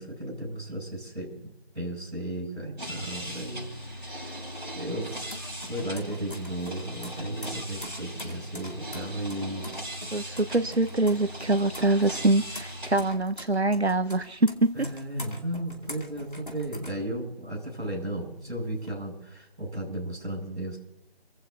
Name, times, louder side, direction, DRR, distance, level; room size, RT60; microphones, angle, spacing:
voice 1, 0.0-3.7 4.0-4.4 4.7-9.7 14.7-20.8, right 1 dB, ahead, -27 dB, 5.7 m, -35 dB
sound 1, 2.8-13.1, equal, 45° right, 6.7 m, -39 dB
sound 2, 3.8-17.7 18.0-18.9, left 1 dB, 50° left, 2.6 m, -45 dB
voice 2, 10.1-14.7, right 2 dB, 80° right, 11 dB, 1.2 m, -24 dB
30.0 x 16.0 x 2.9 m, 0.86 s
figure-of-eight pair, 180°, 32 cm